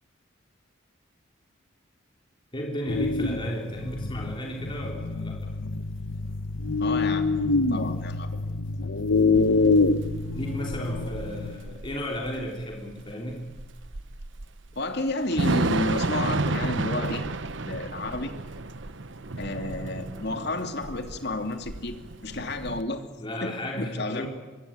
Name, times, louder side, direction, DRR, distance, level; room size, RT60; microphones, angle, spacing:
voice 1, 2.5-5.5 10.3-13.5 23.2-24.3, equal, 25° left, -1 dB, 3.4 m, -33 dB
sound 1, 2.9-11.6, left 3 dB, 75° left, 1.0 m, -26 dB
voice 2, 6.8-8.3 14.8-18.3 19.4-22.0 22.2-23.0 23.4-24.3, left 2 dB, 55° left, 6 dB, 2.7 m, -31 dB
Thunder / Rain, 9.3-22.8, right 2 dB, 65° right, 1.1 m, -32 dB
25.0 x 22.5 x 8.8 m, 1.3 s
head